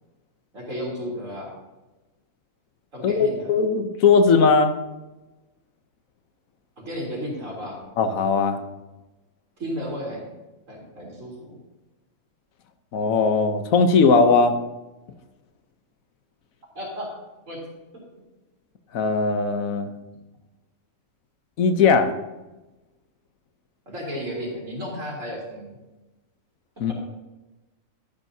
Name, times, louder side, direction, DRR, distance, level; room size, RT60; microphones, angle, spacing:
voice 1, 0.5-1.5 2.9-3.5 6.8-7.9 9.6-10.2 10.7-11.6 16.7-17.1 17.5-17.7 23.9-25.8, equal, 70° right, -3 dB, 3.8 m, -33 dB
voice 2, 3.0-4.7 8.0-8.6 12.9-14.6 18.9-19.9 21.6-22.1 26.8-26.9, left 4 dB, 90° left, 8 dB, 1.3 m, -19 dB
12.0 x 11.0 x 2.8 m, 1.1 s
omnidirectional pair, 1.4 m